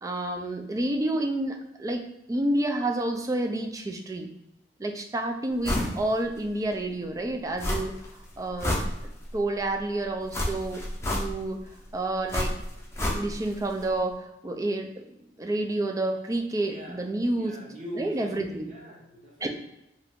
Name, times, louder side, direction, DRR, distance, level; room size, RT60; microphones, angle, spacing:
voice 1, 0.0-4.3 4.8-7.9 8.4-10.8 11.1-11.6 11.9-12.5 13.0-14.9 15.4-17.6 17.9-18.7 19.4-19.5, right 1 dB, 20° right, 4 dB, 0.3 m, -29 dB
sound 1, 5.6-6.0 6.4-6.5 7.6-8.1 8.4-9.4 10.3-11.6 12.3-13.5 13.8-13.9, left 1 dB, 15° left, 0.6 m, -29 dB
voice 2, 16.7-17.1 17.3-19.5, right 1 dB, 45° right, -2 dB, 0.8 m, -42 dB
2.8 x 2.5 x 3.5 m, 0.88 s
head